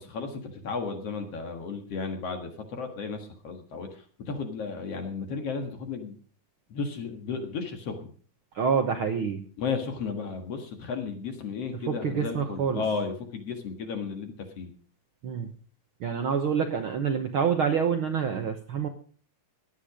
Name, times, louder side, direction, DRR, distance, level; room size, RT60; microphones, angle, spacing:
voice 1, 0.0-3.9 4.3-6.2 6.7-8.1 9.6-14.7, left 5 dB, 55° left, 5 dB, 2.5 m, -34 dB
voice 2, 8.5-9.4 11.7-12.8 15.2-15.5 16.0-18.9, right 6 dB, 60° right, 5 dB, 1.4 m, -27 dB
17.0 x 10.5 x 5.1 m, 0.44 s
omnidirectional pair, 3.7 m